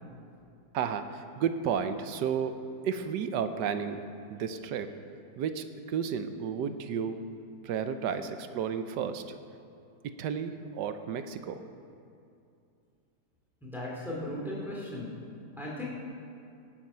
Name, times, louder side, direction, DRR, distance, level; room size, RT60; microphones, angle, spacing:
voice 1, 0.7-2.6 2.8-4.0 4.3-4.9 5.4-7.2 7.6-9.2 10.2-11.6, right 7 dB, 80° right, 9 dB, 1.3 m, -32 dB
voice 2, 13.6-15.2 15.6-15.8, left 1 dB, ahead, -4 dB, 2.3 m, -37 dB
18.0 x 7.4 x 5.6 m, 2.5 s
omnidirectional pair, 1.8 m